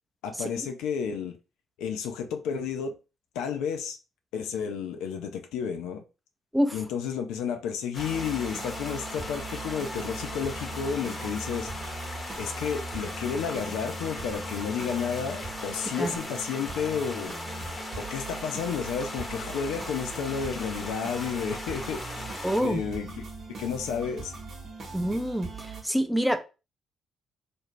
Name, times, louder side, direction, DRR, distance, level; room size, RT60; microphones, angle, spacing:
voice 1, 0.2-1.3 1.8-2.9 3.4-4.0 4.3-6.0 6.7-11.7 12.4-17.3 18.0-22.0 22.6-23.2 23.6-24.3, left 7 dB, 70° left, 0.3 m, -31 dB
sound 1, 7.9-22.6, left 2 dB, 30° left, 0.8 m, -39 dB
sound 2, 8.0-25.8, right 3 dB, 50° right, 0.8 m, -40 dB
voice 2, 22.4-22.8 24.9-25.5 25.8-26.4, equal, ahead, 0.5 m, -26 dB
2.5 x 2.0 x 3.1 m
hypercardioid pair, 45°, 0 cm